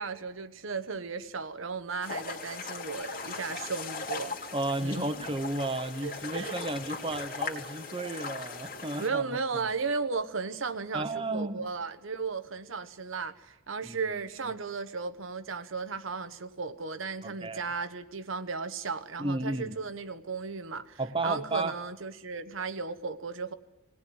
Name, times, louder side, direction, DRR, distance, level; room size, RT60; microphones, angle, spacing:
voice 1, 0.0-4.4 4.8-5.3 6.0-6.5 9.0-23.5, right 4 dB, 80° right, 1.1 m, -35 dB
sound 1, 2.0-9.1, left 4 dB, 45° left, 2.5 m, -39 dB
voice 2, 4.5-9.4 10.9-11.6 13.8-14.2 17.2-17.7 19.2-19.8 21.0-21.7, right 2 dB, 25° right, 1.1 m, -33 dB
20.5 x 17.5 x 9.5 m
head